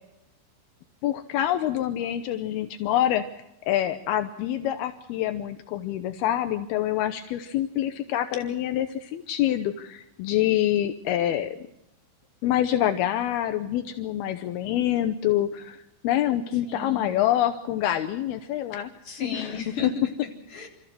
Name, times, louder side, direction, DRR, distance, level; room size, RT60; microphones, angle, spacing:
voice 1, 1.0-11.6 12.4-18.9 19.2-19.9, left 12 dB, 80° left, 9 dB, 2.3 m, -26 dB
voice 2, 16.7-17.1 19.0-20.7, left 5 dB, 30° left, 1 dB, 4.2 m, -35 dB
28.5 x 14.0 x 7.6 m, 0.88 s
omnidirectional pair, 5.6 m